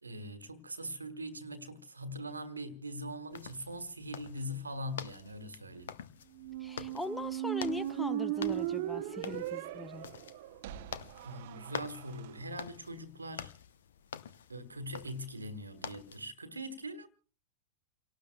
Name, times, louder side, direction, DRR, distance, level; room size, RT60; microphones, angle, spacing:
voice 1, 0.0-6.0 11.2-13.5 14.5-17.1, equal, 80° right, 1.4 m, -42 dB
sound 1, 3.3-16.3, left 8 dB, 65° left, 0.8 m, -48 dB
Squeak, 6.3-12.3, right 14 dB, 55° right, 0.7 m, -37 dB
voice 2, 6.6-10.0, left 2 dB, 5° left, 0.8 m, -40 dB
29.5 x 18.0 x 2.2 m
figure-of-eight pair, 90°, 0 cm